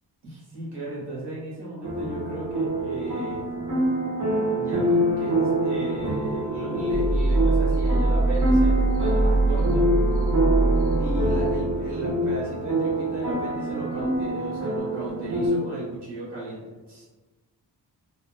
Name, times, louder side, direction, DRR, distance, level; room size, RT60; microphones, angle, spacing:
voice 1, 0.2-3.4 4.5-9.9 11.0-17.0, right 2 dB, 65° right, -7 dB, 1.3 m, -35 dB
sound 1, 1.8-15.5, right 1 dB, 50° right, 1.0 m, -26 dB
sound 2, 6.9-11.8, right 2 dB, ahead, 0.5 m, -23 dB
2.9 x 2.5 x 2.3 m, 1.2 s
wide cardioid pair, 145°, 43 cm